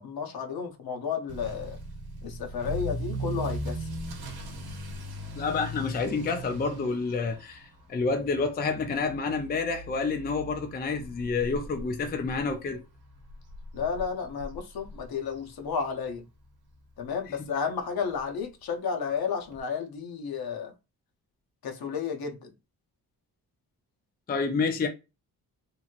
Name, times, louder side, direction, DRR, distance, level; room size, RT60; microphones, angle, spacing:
voice 1, 0.0-1.8 2.2-3.9 13.7-16.2 17.0-20.7 21.6-22.5, left 6 dB, 70° left, 0.8 m, -32 dB
Motor vehicle (road) / Accelerating revving vroom, 1.3-16.1 16.4-16.8 17.3-17.4 17.7-17.8 18.1-18.2 19.5-19.6, right 1 dB, 80° right, 0.9 m, -39 dB
voice 2, 5.4-12.8 17.4-17.5 24.3-24.9, left 4 dB, 25° left, 0.4 m, -29 dB
3.0 x 2.7 x 2.4 m
wide cardioid pair, 160°, 38 cm